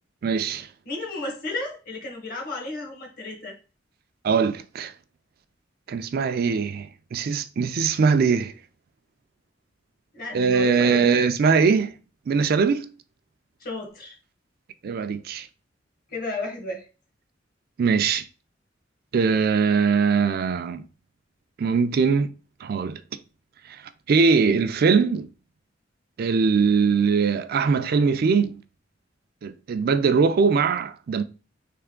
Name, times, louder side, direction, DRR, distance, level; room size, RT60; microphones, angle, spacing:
voice 1, 0.2-0.7 4.2-4.9 5.9-8.5 10.3-11.9 12.3-12.9 14.8-15.5 17.8-18.3 19.1-20.8 21.6-22.3 22.6-23.0 24.1-25.3 26.2-28.6 29.4-31.2, right 5 dB, 50° right, 0.3 m, -21 dB
voice 2, 0.9-3.6 10.1-11.1 13.6-14.2 16.1-16.8, left 2 dB, 50° left, 1.3 m, -33 dB
3.4 x 3.1 x 3.6 m
head